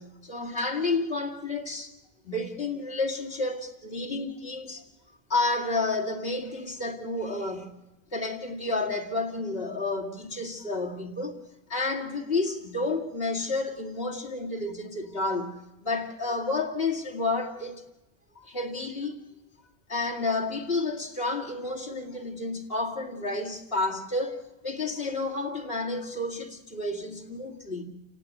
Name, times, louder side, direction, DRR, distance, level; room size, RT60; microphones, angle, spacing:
voice 1, 0.0-1.9 2.2-4.8 5.3-7.8 8.1-11.4 11.7-17.8 18.4-19.2 19.9-27.8, left 3 dB, 65° left, 2.5 m, -30 dB
29.0 x 16.5 x 9.3 m
omnidirectional pair, 1.1 m